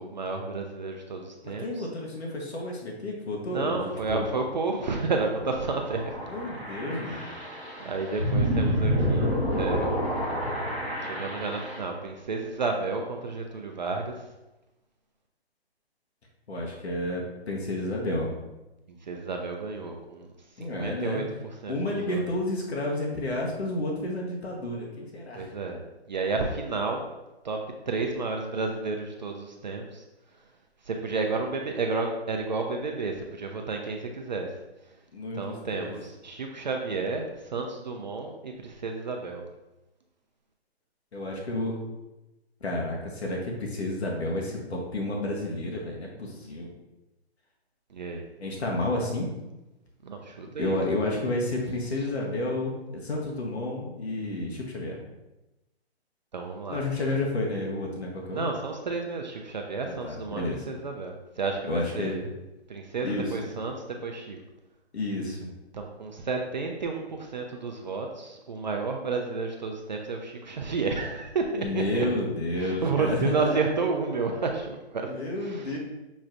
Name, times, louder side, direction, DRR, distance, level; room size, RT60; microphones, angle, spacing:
voice 1, 0.0-1.9 3.5-6.2 7.1-10.0 11.0-14.1 18.9-20.3 20.6-21.2 21.6-22.2 25.3-25.8 26.1-27.1 27.4-30.0 30.9-34.5 35.3-39.4 47.9-48.3 50.0-50.7 56.3-57.1 58.3-62.3 62.7-64.4 65.7-72.1 72.6-75.1 75.4-75.8, right 4 dB, 45° right, 2 dB, 0.4 m, -31 dB
voice 2, 1.4-4.3 6.3-7.3 16.5-18.3 20.6-21.2 21.7-25.5 31.2-31.3 35.1-35.9 41.1-41.7 42.6-46.7 48.4-49.3 50.6-55.0 56.7-58.4 59.8-60.6 61.7-62.2 63.0-63.3 64.9-65.5 71.6-73.6 75.0-75.8, left 1 dB, 75° left, -1 dB, 1.1 m, -31 dB
sound 1, 4.9-11.8, equal, 5° left, 1.4 m, -29 dB
6.1 x 3.1 x 2.5 m, 1.0 s
hypercardioid pair, 155°, 33 cm